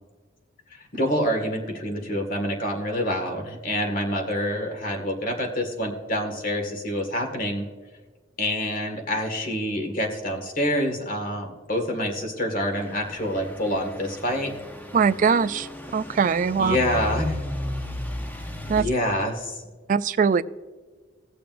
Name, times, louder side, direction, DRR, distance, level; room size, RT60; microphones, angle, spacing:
voice 1, 0.9-7.7 8.4-14.5 16.6-17.4 18.6-19.6, equal, 45° left, 3 dB, 1.8 m, -27 dB
Truck / Idling, 12.7-18.8, left 1 dB, 10° left, 0.6 m, -35 dB
voice 2, 14.9-16.8 18.7-18.9 19.9-20.4, right 6 dB, 40° right, 14 dB, 0.3 m, -21 dB
18.0 x 6.8 x 2.5 m, 1.4 s
head